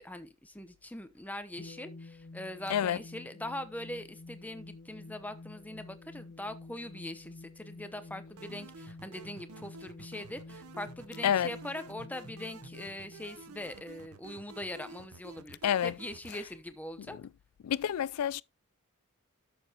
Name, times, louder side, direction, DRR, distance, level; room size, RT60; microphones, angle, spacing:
voice 1, 0.0-17.2, left 1 dB, 5° left, 0.8 m, -42 dB
sound 1, 1.6-14.4, left 3 dB, 45° left, 1.1 m, -50 dB
sound 2, 8.4-16.4, right 3 dB, 75° right, 0.7 m, -51 dB
voice 2, 15.6-15.9 17.6-18.4, left 9 dB, 80° left, 0.3 m, -28 dB
11.5 x 7.0 x 2.9 m
head